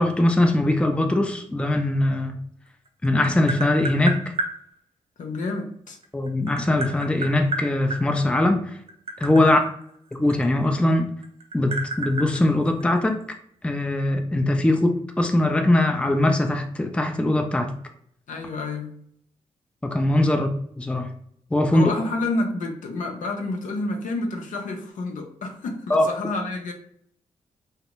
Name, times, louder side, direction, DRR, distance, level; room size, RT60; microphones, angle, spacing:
voice 1, 0.0-2.4 3.0-4.3 6.1-8.8 9.2-9.6 10.1-11.1 11.5-13.2 13.6-17.7 19.8-20.5 20.8-21.1 21.5-21.9 25.9-26.1, left 1 dB, 10° left, 5 dB, 0.4 m, -21 dB
Tap, 2.7-4.5 5.9-8.0 8.8-10.9 11.2-13.2, right 2 dB, 45° right, 0.6 m, -31 dB
voice 2, 5.2-6.0 9.4-9.7 18.3-18.9 21.7-26.7, left 2 dB, 70° left, 3 dB, 0.5 m, -29 dB
2.5 x 2.1 x 2.9 m, 0.66 s
supercardioid pair, 50°, 13 cm